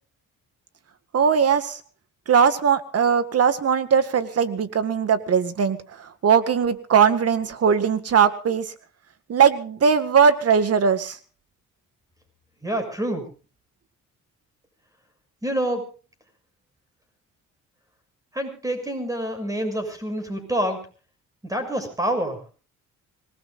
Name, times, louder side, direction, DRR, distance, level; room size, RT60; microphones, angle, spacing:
voice 1, 1.1-1.8 2.3-8.7 9.3-11.2, right 7 dB, 55° right, 12 dB, 1.9 m, -20 dB
voice 2, 12.6-13.3 15.4-15.9 18.3-20.8 21.4-22.5, right 1 dB, 10° right, 7 dB, 6.8 m, -27 dB
25.5 x 19.0 x 2.6 m, 0.36 s
cardioid pair, 90°, 30 cm